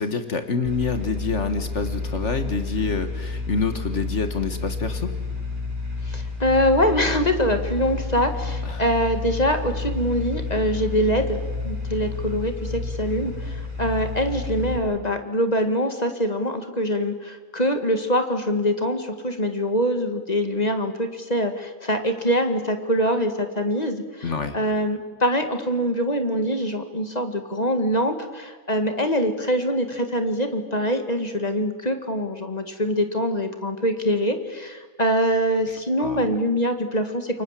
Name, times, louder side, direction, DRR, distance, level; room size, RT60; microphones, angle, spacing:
voice 1, 0.0-5.1 8.6-8.8 24.2-24.6 35.7-36.3, left 4 dB, 55° left, 9 dB, 1.8 m, -27 dB
sound 1, 0.6-14.8, left 3 dB, 35° right, 5.9 m, -30 dB
voice 2, 6.0-37.4, equal, 25° left, 7 dB, 2.0 m, -24 dB
28.5 x 24.0 x 7.5 m, 1.4 s
omnidirectional pair, 1.5 m